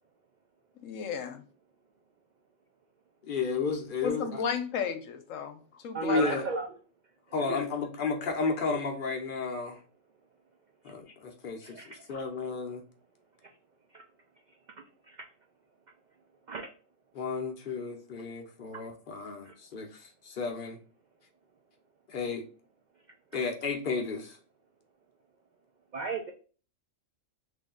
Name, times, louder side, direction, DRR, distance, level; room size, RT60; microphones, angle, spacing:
voice 1, 0.8-1.4 4.0-5.6 5.8-6.2, left 7 dB, 80° left, 6 dB, 1.0 m, -33 dB
voice 2, 3.3-4.4 6.0-6.5 7.3-9.8 10.8-11.7 12.1-12.8 17.1-19.9 20.2-20.8 22.1-22.4 23.3-24.4, left 4 dB, 50° left, 3 dB, 0.8 m, -32 dB
voice 3, 5.9-6.7 7.5-7.6 11.6-11.9 13.9-14.0 15.1-15.2 16.5-16.7 19.5-19.6 25.9-26.3, right 4 dB, 70° right, 3 dB, 0.4 m, -34 dB
3.3 x 2.6 x 3.7 m, 0.39 s
omnidirectional pair, 1.3 m